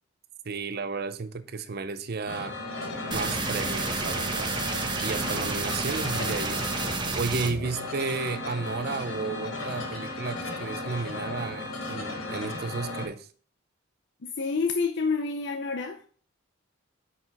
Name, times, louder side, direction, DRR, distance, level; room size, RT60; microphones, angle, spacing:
voice 1, 0.4-2.6 3.1-4.6 5.0-6.7 7.2-13.3, right 4 dB, 50° right, 0.6 m, -33 dB
sound 1, 2.3-13.1, left 2 dB, 80° left, 1.4 m, -35 dB
sound 2, 3.1-7.5, right 3 dB, 25° right, 0.9 m, -30 dB
voice 2, 14.2-16.0, left 4 dB, 60° left, 0.6 m, -29 dB
5.8 x 4.8 x 5.3 m
head